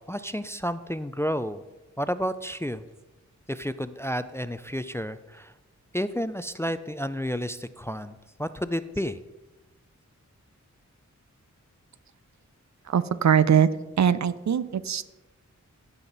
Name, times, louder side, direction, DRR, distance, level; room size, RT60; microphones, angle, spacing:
voice 1, 0.1-1.6 2.0-2.8 3.5-5.5 5.9-9.2, equal, 10° left, 13 dB, 0.3 m, -31 dB
voice 2, 12.9-13.7 14.0-15.0, right 8 dB, 65° right, 14 dB, 0.5 m, -21 dB
15.5 x 5.8 x 4.0 m, 1.1 s
wide cardioid pair, 70°, 31 cm